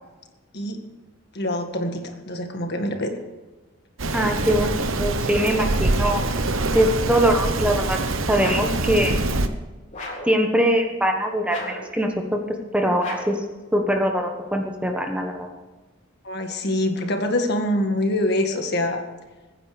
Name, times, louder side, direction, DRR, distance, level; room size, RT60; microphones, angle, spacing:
voice 1, 1.3-3.1 16.2-19.0, left 1 dB, 50° left, 4 dB, 1.9 m, -25 dB
Rain, 4.0-9.5, right 2 dB, 75° right, 1.1 m, -24 dB
voice 2, 4.1-6.2 6.7-8.0 8.3-9.1 10.3-12.4 12.7-13.4 13.7-15.5, equal, 5° right, 3 dB, 1.3 m, -22 dB
sound 1, 8.4-8.8 9.9-10.4 11.4-11.9 13.0-13.5, left 1 dB, 35° left, 3.6 m, -34 dB
22.5 x 9.8 x 5.1 m, 1.2 s
head